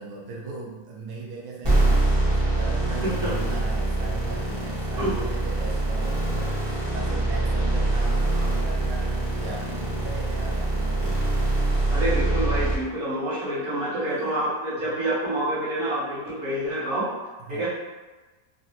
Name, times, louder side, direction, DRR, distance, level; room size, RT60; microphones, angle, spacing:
voice 1, 0.0-11.2 12.6-12.7 14.1-14.3 17.4-17.7, right 3 dB, 80° right, -3 dB, 1.0 m, -38 dB
sound 1, 1.6-12.7, right 2 dB, 20° right, 0.7 m, -24 dB
voice 2, 3.0-3.3 5.0-5.2 11.9-17.1 17.5-17.7, right 1 dB, 60° right, -9 dB, 1.5 m, -27 dB
3.9 x 2.0 x 2.8 m, 1.2 s
omnidirectional pair, 1.6 m